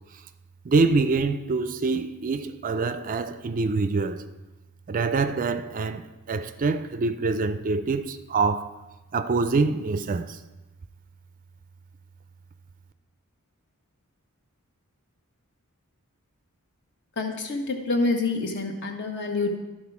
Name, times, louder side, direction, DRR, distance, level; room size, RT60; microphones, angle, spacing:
voice 1, 0.6-4.3 4.9-8.8 9.1-10.4, right 4 dB, 40° right, 0.4 m, -25 dB
voice 2, 17.2-19.6, left 3 dB, 50° left, 1.2 m, -27 dB
12.0 x 4.4 x 5.9 m
head